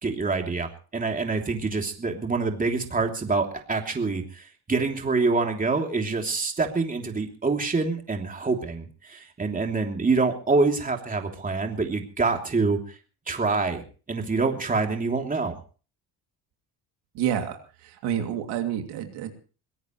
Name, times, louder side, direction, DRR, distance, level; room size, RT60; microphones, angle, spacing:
voice 1, 0.0-12.8 13.3-13.8 14.1-15.5, right 4 dB, 20° right, 3 dB, 3.1 m, -26 dB
voice 2, 17.2-17.6 18.0-19.3, right 10 dB, 90° right, 4 dB, 2.8 m, -28 dB
22.5 x 17.5 x 3.2 m, 0.38 s
cardioid pair, 120°, 39 cm